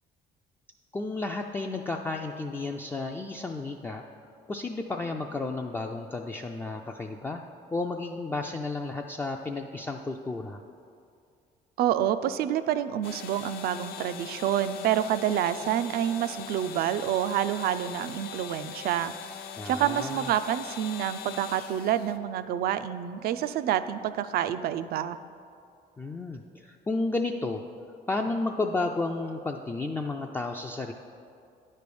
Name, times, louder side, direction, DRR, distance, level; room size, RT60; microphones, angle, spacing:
voice 1, 0.9-4.0 4.5-7.4 7.7-10.6 19.6-20.3 26.0-27.6 28.1-30.9, left 3 dB, 10° left, 2 dB, 0.3 m, -32 dB
voice 2, 11.8-19.1 19.6-25.2, right 10 dB, 65° right, 12 dB, 0.4 m, -28 dB
sound 1, 13.0-22.2, left 8 dB, 65° left, 0.5 m, -42 dB
9.5 x 3.2 x 6.8 m, 2.4 s
cardioid pair, 110°, 17 cm